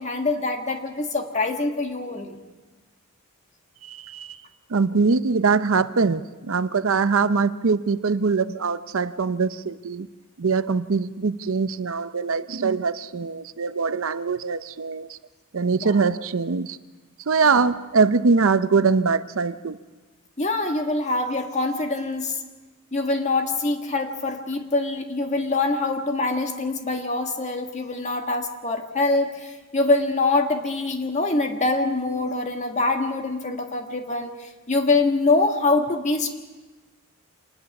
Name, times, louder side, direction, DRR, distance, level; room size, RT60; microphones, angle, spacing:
voice 1, 0.0-2.4 15.8-15.9 17.5-17.7 20.4-22.4 22.9-36.3, left 3 dB, 30° left, 4 dB, 1.7 m, -24 dB
voice 2, 3.8-4.4 4.7-10.1 10.4-15.2 15.5-16.8 17.3-19.8, right 4 dB, 65° right, 13 dB, 0.6 m, -22 dB
26.5 x 20.0 x 6.0 m, 1.2 s
head